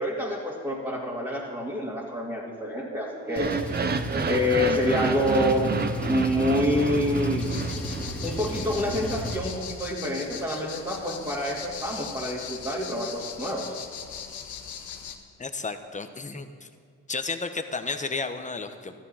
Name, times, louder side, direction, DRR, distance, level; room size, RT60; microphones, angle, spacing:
voice 1, 0.0-3.5 4.3-5.7 6.1-7.5 8.2-13.7, left 1 dB, 15° right, -6 dB, 2.5 m, -27 dB
sound 1, 3.2-8.4, right 5 dB, 35° right, 0.8 m, -30 dB
Engine, 3.4-9.4, equal, 5° left, 2.6 m, -33 dB
sound 2, 7.4-15.2, left 7 dB, 75° left, 1.5 m, -39 dB
voice 2, 15.4-16.7 17.1-18.9, left 4 dB, 25° left, 7 dB, 1.1 m, -32 dB
14.0 x 12.5 x 5.7 m, 2.2 s
cardioid pair, 90°, 30 cm